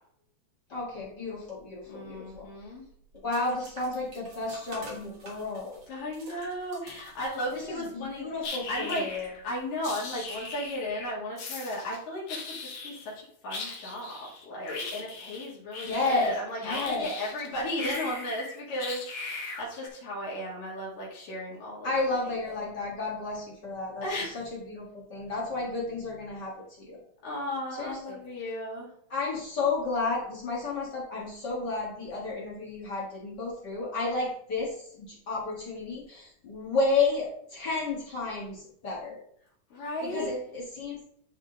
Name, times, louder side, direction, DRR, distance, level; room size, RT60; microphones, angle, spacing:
voice 1, 0.7-2.5 3.2-5.8 7.5-9.3 15.8-16.3 16.6-17.1 21.8-24.8 25.1-27.0 27.8-28.2 29.1-39.2 40.0-41.0, left 3 dB, 45° left, -4 dB, 1.6 m, -32 dB
voice 2, 1.9-2.8 5.9-8.3 8.7-9.1 9.4-21.9 22.2-22.3 24.0-24.4 27.2-28.9 39.7-40.3, left 1 dB, 85° left, -6 dB, 3.4 m, -35 dB
sound 1, 2.1-11.0, right 1 dB, 45° right, 2.1 m, -50 dB
sound 2, 8.4-9.4 9.8-11.1 11.4-12.0 12.3-13.1 13.5-17.5 17.8-19.9, left 3 dB, 60° left, 2.2 m, -39 dB
11.0 x 3.7 x 3.8 m, 0.67 s
omnidirectional pair, 3.7 m